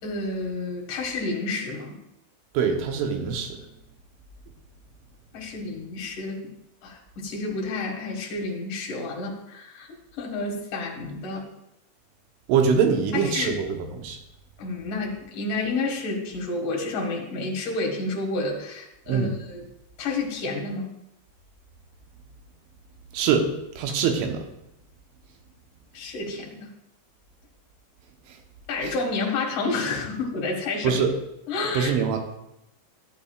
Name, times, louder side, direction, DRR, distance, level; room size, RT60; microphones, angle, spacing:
voice 1, 0.0-2.0 5.3-6.4 6.8-9.9 10.2-11.4 13.1-13.6 14.6-19.6 20.0-20.9 25.9-26.7 28.7-31.0 31.5-31.9, left 3 dB, 55° left, -1 dB, 2.8 m, -30 dB
voice 2, 2.5-3.6 12.5-14.2 19.1-19.4 23.1-23.5 23.8-24.4 28.8-28.9 30.8-31.1 31.7-32.2, right 6 dB, 85° right, 4 dB, 3.5 m, -23 dB
15.0 x 8.6 x 2.4 m, 0.84 s
omnidirectional pair, 5.4 m